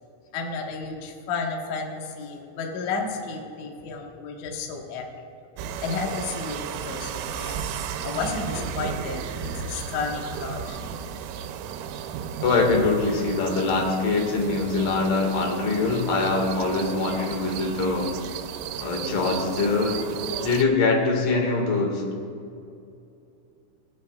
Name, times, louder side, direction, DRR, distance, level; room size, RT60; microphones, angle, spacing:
voice 1, 0.3-5.2 5.8-7.7 8.0-10.9, left 4 dB, 85° left, 0 dB, 1.7 m, -32 dB
sound 1, 5.6-20.6, right 8 dB, 90° right, 3.4 m, -34 dB
voice 2, 12.4-18.1 18.8-20.0 20.4-22.0, left 3 dB, 55° left, 0 dB, 2.7 m, -23 dB
27.0 x 9.4 x 2.3 m, 2.5 s
omnidirectional pair, 5.9 m